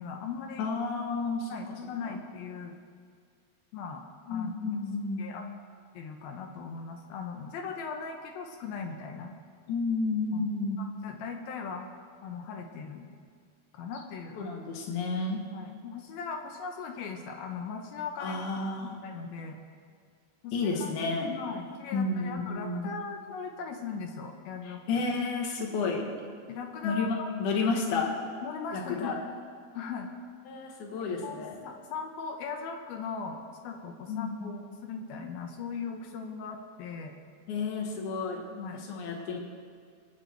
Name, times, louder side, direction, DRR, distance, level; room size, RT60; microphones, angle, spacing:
voice 1, 0.0-0.7 1.5-2.8 3.7-4.0 4.3-4.8 5.2-5.4 5.9-9.3 10.3-10.5 10.8-11.9 12.2-13.1 13.7-14.5 15.5-18.4 18.8-19.6 20.4-20.6 20.8-20.9 21.3-25.0 26.5-27.3 28.4-29.2 29.7-30.1 31.2-31.4 31.6-37.2 38.5-38.8, left 5 dB, 75° left, 3 dB, 2.6 m, -39 dB
voice 2, 0.6-1.5 2.1-2.2 4.3-5.4 9.7-10.8 14.4-15.4 18.2-18.9 20.5-21.3 21.9-22.9 24.6-26.0 26.8-28.4 28.7-29.2 30.5-31.6 34.1-34.5 37.5-38.4 38.7-39.4, left 4 dB, 55° left, 1 dB, 2.8 m, -31 dB
24.0 x 9.7 x 4.6 m, 2.1 s
omnidirectional pair, 4.8 m